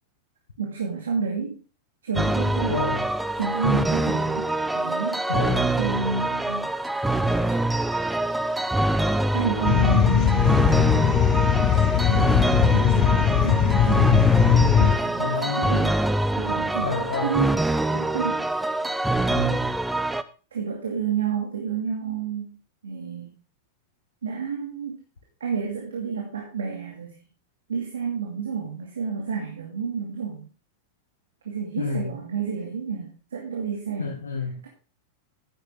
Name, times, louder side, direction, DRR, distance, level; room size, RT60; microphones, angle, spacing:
voice 1, 0.6-1.6 2.0-2.9 3.4-5.3 5.8-6.7 9.3-10.6 12.1-14.3 14.5-16.0 16.4-17.6 17.9-18.6 20.5-22.6 22.8-23.3 24.2-25.0 25.4-27.1 27.7-30.5 31.5-34.2, right 5 dB, 75° right, 0 dB, 2.3 m, -30 dB
sound 1, 2.2-20.2, right 2 dB, 5° right, 0.6 m, -25 dB
voice 2, 2.7-3.1 5.3-5.8 15.2-15.8 16.8-17.3 19.3-19.7 31.8-32.1 34.0-34.5, left 5 dB, 80° left, 1 dB, 1.6 m, -29 dB
sound 2, 9.6-15.0, left 9 dB, 40° left, 1.3 m, -19 dB
9.9 x 9.7 x 3.7 m, 0.35 s
figure-of-eight pair, 95°, 0 cm